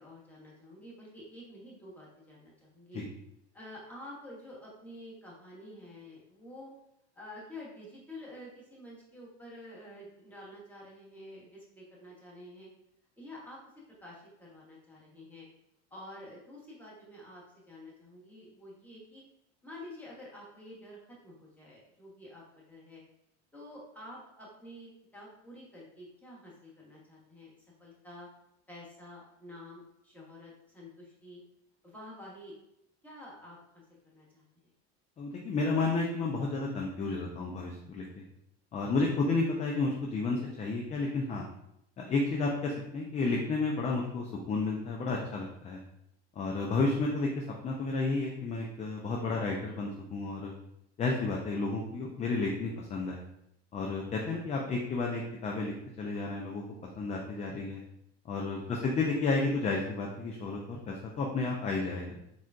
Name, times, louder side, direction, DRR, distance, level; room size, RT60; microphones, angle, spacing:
voice 1, 0.0-3.0 3.5-6.7 7.1-12.7 13.2-13.6 14.0-15.5 15.9-19.2 19.6-23.0 23.5-27.5 27.8-28.3 28.7-31.4 31.8-32.5 33.0-34.4 58.5-58.9, left 1 dB, 5° left, -6 dB, 1.2 m, -49 dB
voice 2, 35.2-38.2 38.7-41.5 42.0-45.8 46.4-50.6 51.0-53.2 53.7-55.7 56.0-56.6 57.0-57.8 58.3-62.2, left 3 dB, 20° left, -1 dB, 0.3 m, -31 dB
3.6 x 2.3 x 2.4 m, 0.79 s
supercardioid pair, 95°, 33 cm